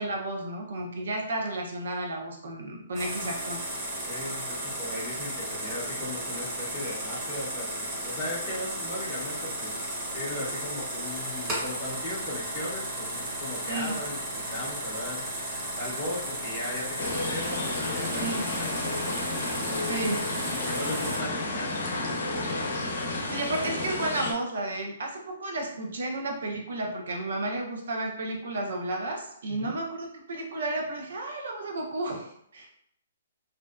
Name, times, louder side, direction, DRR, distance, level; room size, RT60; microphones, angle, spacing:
voice 1, 0.0-3.7 13.7-14.0 18.1-18.4 19.9-20.3 23.3-32.7, right 2 dB, 70° right, 1 dB, 0.6 m, -32 dB
sound 1, 2.9-21.2, right 1 dB, 20° right, 0.7 m, -34 dB
voice 2, 4.1-15.2 15.8-19.6 20.5-22.8 25.7-25.9 29.5-29.7, left 1 dB, 20° left, -8 dB, 0.7 m, -38 dB
sound 2, 17.0-24.3, left 2 dB, 70° left, 0.6 m, -31 dB
2.5 x 2.1 x 2.3 m, 0.68 s
hypercardioid pair, 155°, 0 cm